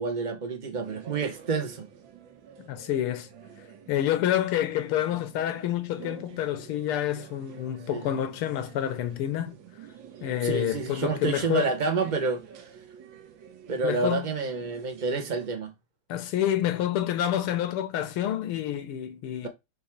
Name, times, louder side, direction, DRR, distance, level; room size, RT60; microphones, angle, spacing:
voice 1, 0.0-1.9 7.9-8.0 10.4-12.4 13.7-15.7 19.4-19.5, right 4 dB, 90° right, 0.4 m, -29 dB
sound 1, 0.8-15.5, right 7 dB, 65° right, 1.7 m, -49 dB
voice 2, 2.6-3.3 3.9-9.5 10.2-11.7 13.8-14.3 16.1-19.5, left 11 dB, 85° left, 1.8 m, -28 dB
5.3 x 3.6 x 5.8 m
omnidirectional pair, 2.4 m